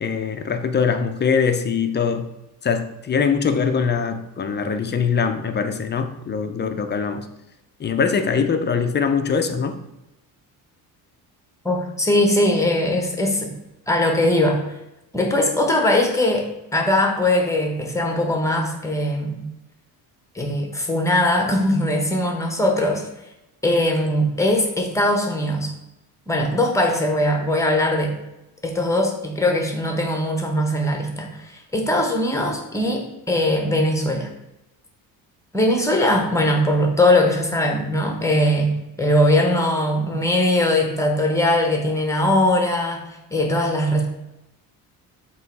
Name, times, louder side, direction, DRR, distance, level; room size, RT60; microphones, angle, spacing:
voice 1, 0.0-2.3 2.6-7.3 7.8-9.8, left 6 dB, 30° left, 7 dB, 0.5 m, -22 dB
voice 2, 11.6-13.5 13.9-14.6 15.1-19.4 20.3-23.1 23.6-25.7 26.3-28.2 28.6-34.3 35.5-38.7 39.0-43.0 43.3-44.1, left 1 dB, 10° left, 2 dB, 1.0 m, -20 dB
7.8 x 3.1 x 4.6 m, 0.93 s
cardioid pair, 140°, 38 cm